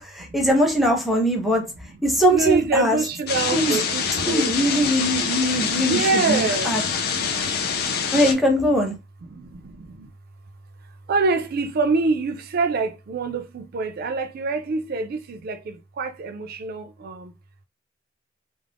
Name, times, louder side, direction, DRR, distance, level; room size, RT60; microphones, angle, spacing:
voice 1, 0.0-1.6 2.0-3.0 3.5-3.8 4.3-6.8 8.1-8.9, equal, ahead, 0.6 m, -21 dB
voice 2, 1.4-2.0 2.3-4.6 4.8-4.9 5.4-8.0 9.2-10.1 11.1-17.3, right 3 dB, 50° right, 0.3 m, -26 dB
sound 1, 3.3-8.3, left 6 dB, 50° left, 0.4 m, -25 dB
2.4 x 2.0 x 3.4 m
head